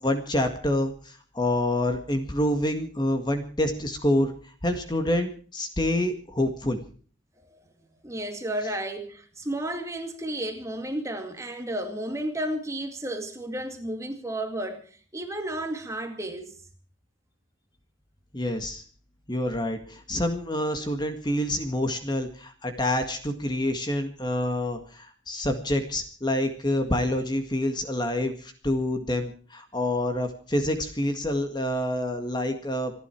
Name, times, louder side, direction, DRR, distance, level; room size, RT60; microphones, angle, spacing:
voice 1, 0.0-4.3 4.6-6.8 18.3-18.8 19.3-32.9, left 1 dB, 20° left, 1.8 m, -27 dB
voice 2, 8.0-16.5, right 1 dB, 15° right, 2.2 m, -32 dB
27.5 x 11.0 x 4.6 m
head